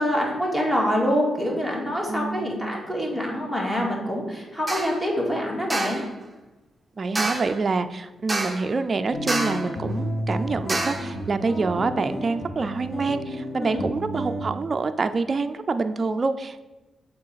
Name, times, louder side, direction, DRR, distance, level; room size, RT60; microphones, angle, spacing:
voice 1, 0.0-6.0 13.6-13.8, equal, 10° left, -2 dB, 2.1 m, -25 dB
voice 2, 2.1-2.5 7.0-16.6, right 4 dB, 40° right, 8 dB, 0.3 m, -26 dB
sound 1, 4.7-5.0 5.7-6.1 7.2-7.6 8.3-8.7 9.3-9.7 10.7-11.1, right 2 dB, 10° right, 0.9 m, -28 dB
sound 2, 9.1-14.4, equal, 45° left, 1.2 m, -31 dB
6.4 x 4.0 x 5.6 m, 1.1 s
cardioid pair, 85°, 0 cm